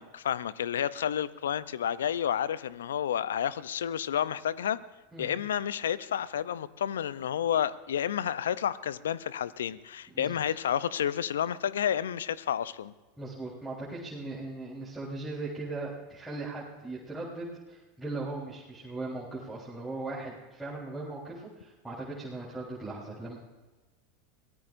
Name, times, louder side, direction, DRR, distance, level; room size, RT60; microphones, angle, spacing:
voice 1, 0.0-4.8 5.2-12.9, left 9 dB, 80° left, 17 dB, 0.6 m, -30 dB
voice 2, 10.1-10.4 13.2-23.4, right 2 dB, 5° right, -8 dB, 3.9 m, -39 dB
23.0 x 17.5 x 2.6 m, 1.2 s
hypercardioid pair, 90°, 0 cm